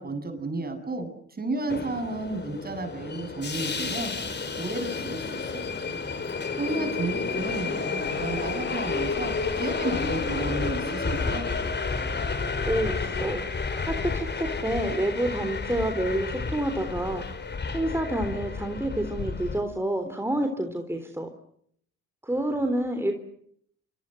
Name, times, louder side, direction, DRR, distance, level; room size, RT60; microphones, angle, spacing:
voice 1, 0.0-4.1 4.6-5.8 6.5-11.5, right 2 dB, 30° right, 7 dB, 7.7 m, -32 dB
Subway metro underground, 1.7-19.6, left 4 dB, 35° left, 4.1 m, -31 dB
voice 2, 12.6-21.3 22.2-23.1, right 1 dB, 10° right, 5 dB, 3.6 m, -28 dB
27.5 x 26.0 x 7.8 m, 0.68 s
cardioid pair, 90°, 30 cm